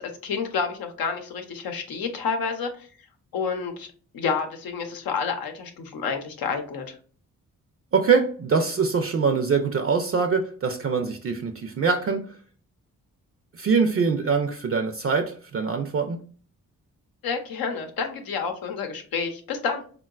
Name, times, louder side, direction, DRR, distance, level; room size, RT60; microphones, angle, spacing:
voice 1, 0.0-2.9 3.3-3.9 4.1-7.0 17.2-19.8, left 5 dB, 85° left, 5 dB, 0.7 m, -29 dB
voice 2, 7.9-12.3 13.6-16.2, right 5 dB, 40° right, 6 dB, 0.4 m, -23 dB
3.7 x 2.2 x 2.3 m, 0.42 s
cardioid pair, 55°, 35 cm